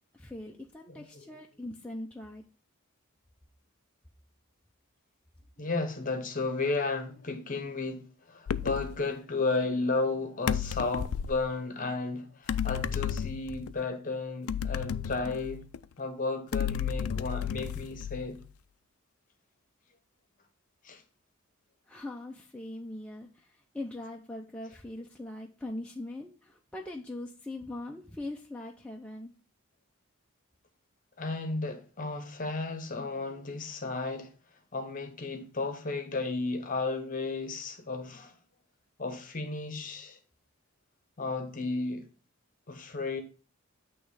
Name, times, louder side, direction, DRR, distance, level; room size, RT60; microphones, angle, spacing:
voice 1, 0.1-2.4 21.9-23.3 23.7-29.3, left 1 dB, 5° left, 0.4 m, -41 dB
voice 2, 0.8-1.2 5.6-15.6 16.0-18.4 20.8-21.0 31.2-34.3 34.7-38.4 39.0-40.2 41.2-42.0 42.7-43.2, left 3 dB, 40° left, 0.9 m, -33 dB
sound 1, 8.5-8.9 10.5-11.4 12.5-13.7 14.5-15.8 16.5-18.4, left 8 dB, 80° left, 0.3 m, -32 dB
8.4 x 3.1 x 4.8 m
head